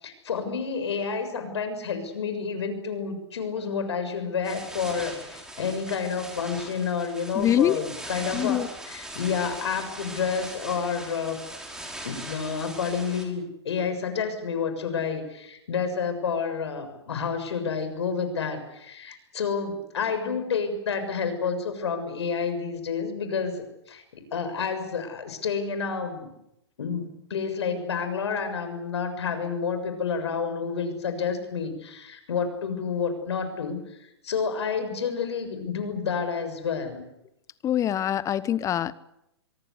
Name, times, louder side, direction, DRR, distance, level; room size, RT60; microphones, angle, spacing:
voice 1, 0.0-11.4 12.0-26.3 26.8-37.0, left 6 dB, 75° left, 9 dB, 6.9 m, -29 dB
sound 1, 4.4-13.2, right 1 dB, 5° right, 5.4 m, -40 dB
voice 2, 7.4-7.8 8.3-8.7 37.6-38.9, left 11 dB, 20° left, 18 dB, 1.1 m, -24 dB
24.5 x 23.0 x 8.4 m, 0.83 s
hypercardioid pair, 125°, 14 cm